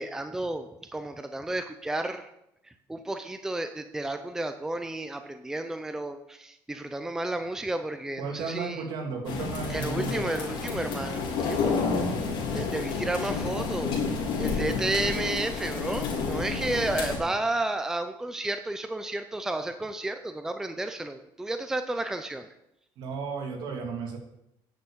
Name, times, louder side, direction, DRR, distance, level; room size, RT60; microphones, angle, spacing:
voice 1, 0.0-2.3 2.9-8.8 9.7-11.8 12.5-13.9 14.4-22.5, right 2 dB, 5° right, 7 dB, 0.6 m, -32 dB
voice 2, 8.2-10.3 23.0-24.2, right 5 dB, 65° right, 1 dB, 3.0 m, -34 dB
sound 1, 9.2-17.2, left 4 dB, 80° left, 4.1 m, -30 dB
10.0 x 6.9 x 7.3 m, 0.82 s
cardioid pair, 150°, 9 cm